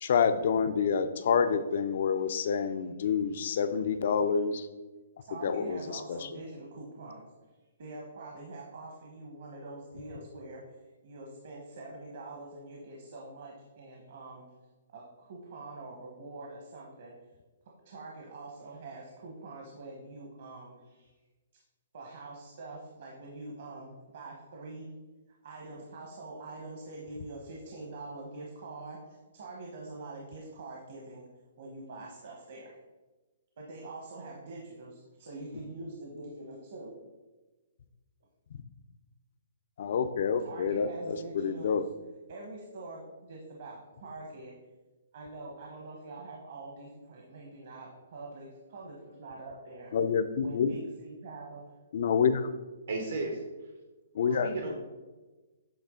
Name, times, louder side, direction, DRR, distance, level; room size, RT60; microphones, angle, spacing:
voice 1, 0.0-4.7 5.4-5.8 6.1-6.3 39.8-41.8 49.9-50.7 51.9-52.5 54.1-54.5, left 6 dB, 50° left, 11 dB, 0.4 m, -28 dB
voice 2, 5.3-7.3 7.8-10.6 11.0-14.4 14.9-17.1 17.8-21.1 21.9-24.9 25.4-31.2 31.6-32.7 33.6-36.9 40.4-41.8 42.3-44.5 45.1-49.9 50.4-51.7 54.2-54.4, right 2 dB, 50° right, -2 dB, 1.0 m, -45 dB
voice 3, 52.9-53.4 54.4-54.7, right 3 dB, 80° right, 0 dB, 1.1 m, -33 dB
8.0 x 3.4 x 3.7 m, 1.2 s
hypercardioid pair, 170°, 0 cm